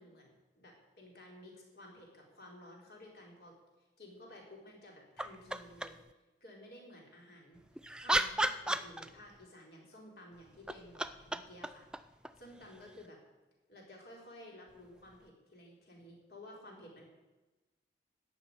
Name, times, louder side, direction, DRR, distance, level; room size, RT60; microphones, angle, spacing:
voice 1, 0.0-3.5 4.0-6.0 6.4-11.9 12.4-13.2 13.7-17.0, left 1 dB, 60° left, -1 dB, 3.9 m, -54 dB
sound 1, 5.2-6.1 7.6-9.4 10.5-13.1 15.1-15.2, right 1 dB, 5° right, 0.3 m, -36 dB
14.5 x 6.3 x 9.7 m, 1.1 s
head